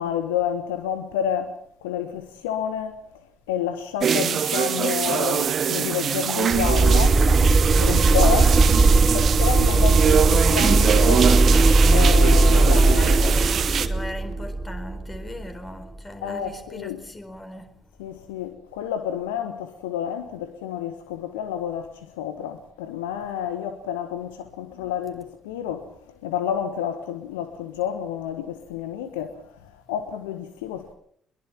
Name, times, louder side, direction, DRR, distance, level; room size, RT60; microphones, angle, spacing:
voice 1, 0.0-3.0 3.5-7.5 7.8-8.6 9.1-11.4 11.9-13.3 16.2-17.0 18.0-30.9, left 9 dB, 70° left, 1.3 m, -29 dB
sound 1, 4.0-13.9, right 7 dB, 45° right, 1.5 m, -24 dB
sound 2, 6.5-15.4, right 3 dB, 30° right, 1.3 m, -18 dB
voice 2, 8.7-9.1 13.0-17.7, left 1 dB, 20° left, 4.6 m, -38 dB
22.5 x 22.5 x 6.0 m
figure-of-eight pair, 45°, 0 cm